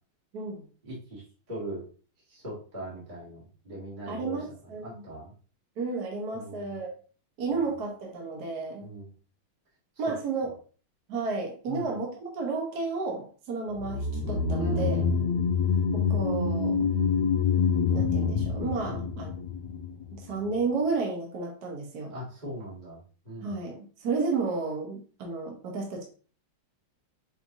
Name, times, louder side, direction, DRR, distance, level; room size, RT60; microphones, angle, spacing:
voice 1, 0.3-0.6 4.1-5.1 5.8-6.9 7.4-8.8 10.0-10.6 11.1-15.0 15.9-16.9 17.9-19.3 20.1-22.1 23.4-26.0, right 4 dB, 55° right, 0 dB, 1.3 m, -32 dB
voice 2, 0.8-1.2 1.5-1.8 2.3-4.4 4.8-5.3 6.3-6.7 7.6-7.7 8.8-9.1 11.7-11.9 14.6-15.5 18.9-19.1 22.1-23.0 23.2-23.6, equal, 25° right, -7 dB, 1.5 m, -39 dB
sound 1, 13.8-20.2 20.4-20.5, left 5 dB, 75° left, 1.0 m, -26 dB
5.3 x 3.2 x 2.6 m, 0.40 s
omnidirectional pair, 2.4 m